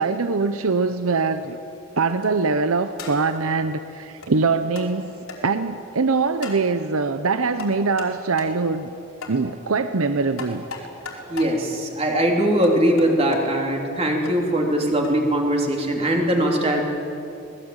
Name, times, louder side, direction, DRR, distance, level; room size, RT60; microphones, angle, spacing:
voice 1, 0.0-1.6 1.9-5.1 5.4-8.9 9.3-10.6, right 4 dB, 80° right, 10 dB, 0.8 m, -23 dB
sound 1, 2.1-2.4 3.0-3.4 4.2-4.3 4.8-4.9 5.3-5.4 6.4-6.6 7.6-8.1 8.4-8.5 9.2-9.4 10.4-11.5 12.6-13.4 14.3-14.4 15.0-15.2, left 4 dB, 90° left, 4.8 m, -36 dB
voice 2, 11.3-16.8, right 1 dB, 30° right, 0 dB, 3.5 m, -21 dB
26.0 x 19.5 x 9.0 m, 2.8 s
head